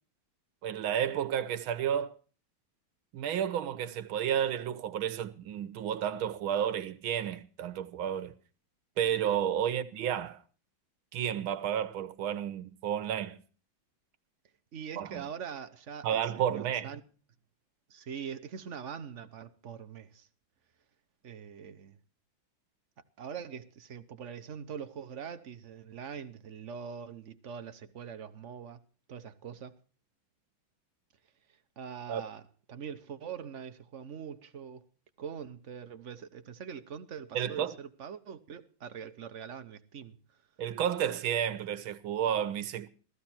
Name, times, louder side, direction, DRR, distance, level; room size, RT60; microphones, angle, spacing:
voice 1, 0.6-2.1 3.1-8.3 9.0-10.4 11.1-13.4 15.0-15.2 16.0-17.0 32.1-32.2 37.3-37.8 40.6-42.9, right 9 dB, 80° right, 1.8 m, -31 dB
voice 2, 14.7-17.0 17.9-20.3 21.2-22.0 23.2-28.8 29.1-29.7 31.8-34.8 35.2-40.2, right 7 dB, 45° right, 1.0 m, -43 dB
15.5 x 14.5 x 4.4 m
omnidirectional pair, 2.2 m